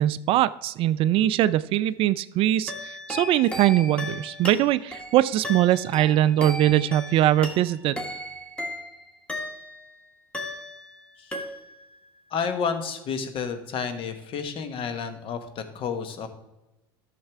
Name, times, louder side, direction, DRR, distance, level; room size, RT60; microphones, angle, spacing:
voice 1, 0.0-8.0, right 13 dB, 50° right, 16 dB, 0.4 m, -22 dB
sound 1, 2.7-9.9 10.3-11.0 11.3-11.9, left 1 dB, 10° left, 1.6 m, -36 dB
voice 2, 12.3-16.3, left 6 dB, 45° left, 8 dB, 1.2 m, -30 dB
12.0 x 6.6 x 3.5 m, 0.99 s
hypercardioid pair, 80°, 13 cm